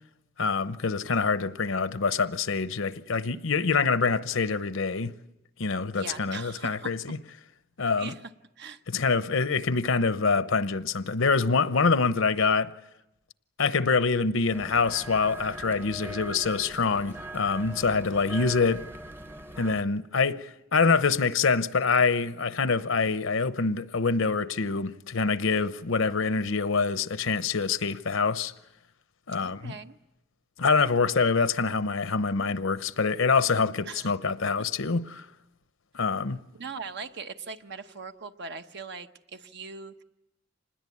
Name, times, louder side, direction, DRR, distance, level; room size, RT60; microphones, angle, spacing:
voice 1, 0.4-5.1 5.6-7.2 7.8-8.1 8.9-12.7 13.6-18.9 19.6-28.5 29.3-29.7 30.6-35.3 35.9-36.4, left 4 dB, 75° left, 0.8 m, -25 dB
voice 2, 5.9-6.9 8.0-8.3 8.6-8.8 29.4-30.0 33.8-34.1 36.5-40.0, right 4 dB, 60° right, 1.0 m, -40 dB
sound 1, 14.5-19.8, right 1 dB, 10° right, 0.8 m, -41 dB
26.5 x 20.5 x 8.5 m
head